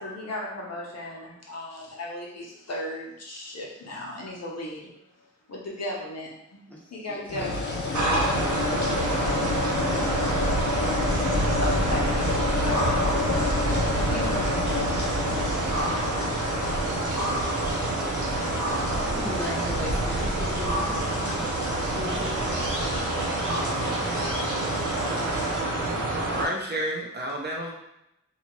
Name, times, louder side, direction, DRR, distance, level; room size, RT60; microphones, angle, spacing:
voice 1, 0.0-4.9 5.5-6.6 6.9-7.8 11.6-15.0 16.4-17.6 18.0-19.4 21.1-22.0 22.9-24.6 24.9-26.3, left 1 dB, 55° left, -3 dB, 0.8 m, -37 dB
voice 2, 6.7-10.1 19.1-21.4 21.9-22.6, left 1 dB, 5° left, -4 dB, 0.7 m, -38 dB
sound 1, 7.2-25.6, equal, 80° left, 1.0 m, -40 dB
sound 2, 7.3-19.1, left 3 dB, 40° left, 0.4 m, -30 dB
sound 3, 7.9-26.4, right 1 dB, 85° right, 0.6 m, -27 dB
voice 3, 26.3-27.7, right 1 dB, 35° right, -1 dB, 0.5 m, -30 dB
2.7 x 2.4 x 3.0 m, 0.84 s
wide cardioid pair, 80°, 30 cm